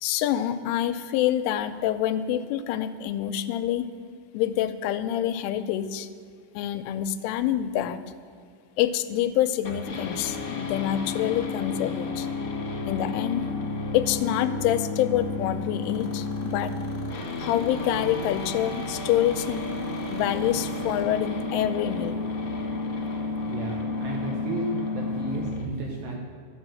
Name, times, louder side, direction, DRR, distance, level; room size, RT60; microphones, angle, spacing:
voice 1, 0.0-3.9 4.3-6.1 6.5-8.0 8.8-12.3 12.9-13.5 13.9-16.8 17.4-19.6 20.1-22.2, left 11 dB, 90° left, 10 dB, 3.1 m, -26 dB
sound 1, 9.6-25.6, left 3 dB, 55° left, 1.7 m, -31 dB
sound 2, 15.8-21.0, left 2 dB, 35° left, 1.0 m, -45 dB
voice 2, 23.4-26.2, right 2 dB, 70° right, 0 dB, 2.3 m, -33 dB
12.0 x 7.8 x 7.6 m, 2.3 s
omnidirectional pair, 5.6 m